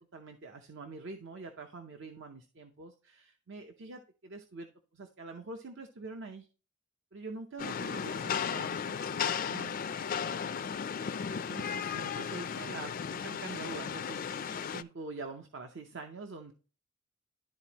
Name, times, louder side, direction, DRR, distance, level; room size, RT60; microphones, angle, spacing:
voice 1, 0.1-4.7 4.9-6.5 7.1-7.9 8.5-8.8 9.5-9.7 11.5-16.5, right 3 dB, 60° right, 5 dB, 0.7 m, -45 dB
Rain, 7.6-14.8, left 7 dB, 45° left, 0.4 m, -35 dB
voice 2, 7.8-11.1, right 2 dB, 80° right, -1 dB, 3.0 m, -54 dB
12.0 x 4.1 x 2.9 m, 0.35 s
head